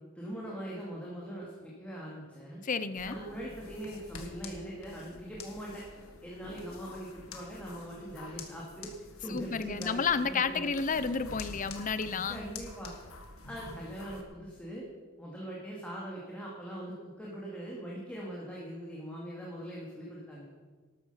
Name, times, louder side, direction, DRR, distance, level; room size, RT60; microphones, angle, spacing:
voice 1, 0.2-2.6 3.1-5.8 6.2-8.9 9.2-10.7 12.3-12.9 13.4-14.9 15.2-20.4, equal, 5° left, -5 dB, 2.2 m, -41 dB
voice 2, 2.6-3.2 9.3-12.5, left 5 dB, 40° left, 14 dB, 0.6 m, -31 dB
sound 1, 3.0-14.2, left 3 dB, 85° left, 1.8 m, -47 dB
13.0 x 12.5 x 5.6 m, 1.4 s
head